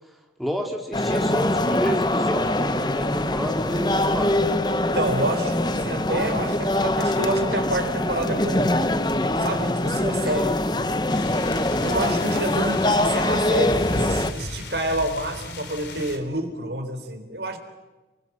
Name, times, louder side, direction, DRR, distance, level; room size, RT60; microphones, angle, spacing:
voice 1, 0.4-4.5 10.3-10.5, equal, ahead, 1 dB, 2.4 m, -30 dB
sound 1, 0.9-14.3, left 1 dB, 25° left, 0.9 m, -23 dB
voice 2, 4.8-8.7 9.4-10.9 11.8-17.6, right 1 dB, 70° right, 6 dB, 3.8 m, -28 dB
sound 2, 11.1-16.2, left 1 dB, 75° left, 3.8 m, -35 dB
30.0 x 21.0 x 7.4 m, 1.1 s
head